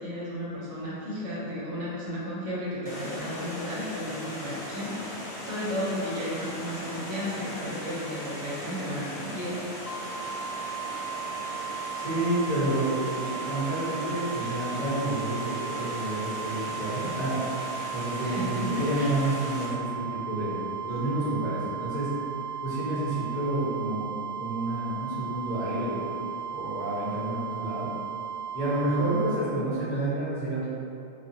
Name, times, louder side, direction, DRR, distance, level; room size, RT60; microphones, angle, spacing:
voice 1, 0.0-5.0 5.4-9.6 18.2-19.2, equal, 65° right, -7 dB, 0.9 m, -33 dB
Water, 2.9-19.7, left 1 dB, 90° left, 0.4 m, -38 dB
sound 1, 9.9-29.4, right 8 dB, 70° left, 1.0 m, -36 dB
voice 2, 11.9-17.4 17.9-20.6 20.8-22.1 22.6-24.1 24.4-26.1 26.5-27.9 28.5-30.8, right 1 dB, 35° left, -12 dB, 1.0 m, -29 dB
2.5 x 2.3 x 2.7 m, 2.5 s
omnidirectional pair, 1.5 m